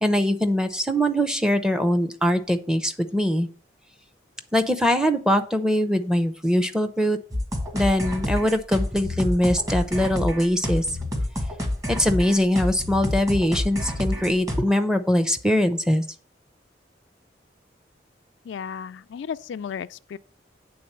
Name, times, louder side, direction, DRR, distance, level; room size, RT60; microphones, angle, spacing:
voice 1, 0.0-3.5 4.5-7.2 7.7-10.9 11.9-16.0, equal, 5° right, 0.6 m, -22 dB
sound 1, 7.3-14.6, left 1 dB, 20° right, 1.3 m, -28 dB
voice 2, 18.5-20.2, left 7 dB, 75° left, 0.3 m, -34 dB
8.5 x 3.8 x 6.6 m
head